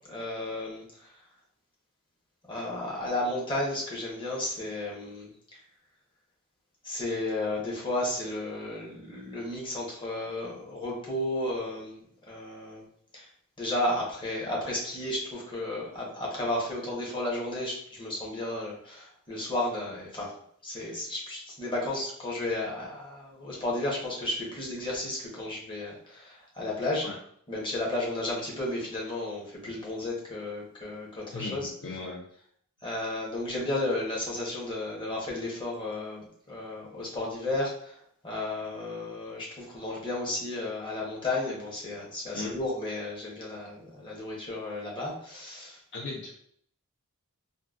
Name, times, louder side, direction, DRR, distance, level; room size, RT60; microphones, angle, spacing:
voice 1, 0.1-1.1 2.5-5.6 6.8-12.9 13.1-13.3 13.6-20.3 20.6-27.1 27.5-31.7 32.8-45.8, left 2 dB, 20° left, -4 dB, 0.9 m, -33 dB
voice 2, 31.3-32.2 42.3-42.5 45.9-46.3, left 3 dB, 55° left, -1 dB, 0.5 m, -37 dB
3.7 x 2.1 x 2.4 m, 0.64 s
head